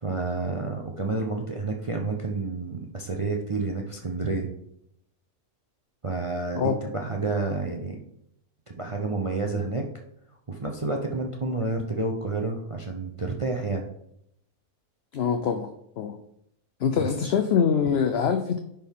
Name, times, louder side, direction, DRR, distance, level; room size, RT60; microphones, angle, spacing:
voice 1, 0.0-4.5 6.0-8.0 8.7-9.9 10.5-13.9 17.0-17.1, right 3 dB, 35° right, 2 dB, 0.5 m, -29 dB
voice 2, 15.1-15.7 16.0-16.2 16.8-18.6, left 7 dB, 60° left, 7 dB, 0.7 m, -24 dB
10.5 x 4.4 x 3.6 m, 0.75 s
omnidirectional pair, 1.5 m